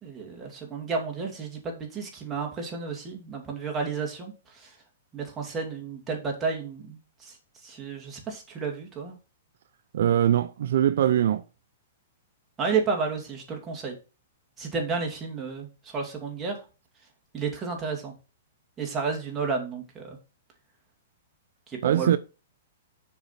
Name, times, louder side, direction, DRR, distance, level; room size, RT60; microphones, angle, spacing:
voice 1, 0.0-4.8 5.1-7.4 7.6-9.1 12.6-14.0 14.6-16.6 17.3-18.1 18.8-20.2 21.7-22.2, right 5 dB, 15° right, 2.5 m, -32 dB
voice 2, 9.9-11.4 21.8-22.2, right 10 dB, 65° right, 0.5 m, -22 dB
7.1 x 5.1 x 5.8 m
hypercardioid pair, 155°, 0 cm